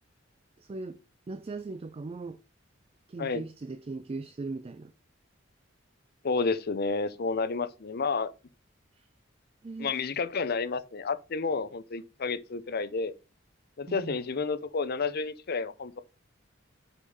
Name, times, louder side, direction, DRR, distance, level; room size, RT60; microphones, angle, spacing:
voice 1, 0.6-1.0 1.3-2.4 3.1-4.9 9.0-9.1 9.6-10.0 13.9-14.2, right 3 dB, 30° right, 0.4 m, -39 dB
voice 2, 6.2-8.3 9.8-13.1 13.8-16.0, left 4 dB, 55° left, 0.6 m, -30 dB
5.2 x 4.9 x 5.4 m
head